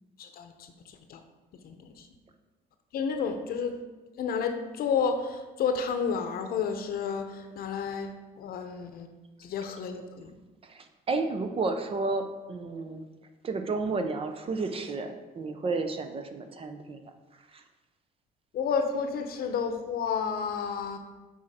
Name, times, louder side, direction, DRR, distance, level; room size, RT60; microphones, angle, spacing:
voice 1, 0.2-0.5 1.1-1.2 1.6-2.0 2.9-3.8 4.2-8.1 8.4-9.1 9.4-10.3 18.5-21.0, left 6 dB, 60° left, 6 dB, 0.8 m, -31 dB
voice 2, 10.6-13.0 13.4-17.1 17.5-17.6, right 3 dB, 35° right, 7 dB, 0.6 m, -32 dB
7.2 x 4.3 x 4.2 m, 1.2 s
cardioid pair, 110°, 17 cm